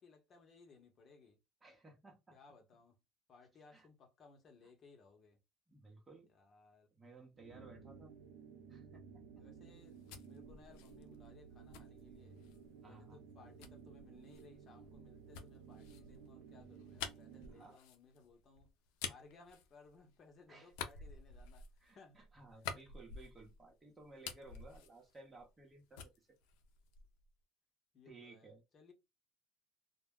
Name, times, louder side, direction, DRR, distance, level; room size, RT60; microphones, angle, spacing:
voice 1, 0.0-1.4 2.3-3.0 3.3-5.4 6.3-6.9 9.4-12.4 12.9-18.7 19.0-21.7 21.9-22.2 22.7-22.8 27.9-28.9, left 4 dB, 40° left, 0.8 m, -62 dB
voice 2, 1.6-2.4 3.7-3.9 5.7-6.3 6.9-8.1 8.7-9.4 12.8-13.2 17.5-17.8 20.5-20.7 21.8-26.3 28.0-28.6, right 3 dB, 20° right, 0.9 m, -58 dB
sound 1, 7.3-17.8, right 6 dB, 75° right, 0.5 m, -56 dB
sound 2, 9.7-12.7 13.6-20.3 20.7-23.7 24.0-25.7 25.9-27.3, left 7 dB, 80° left, 0.5 m, -50 dB
2.2 x 2.1 x 3.5 m
cardioid pair, 120°, 0 cm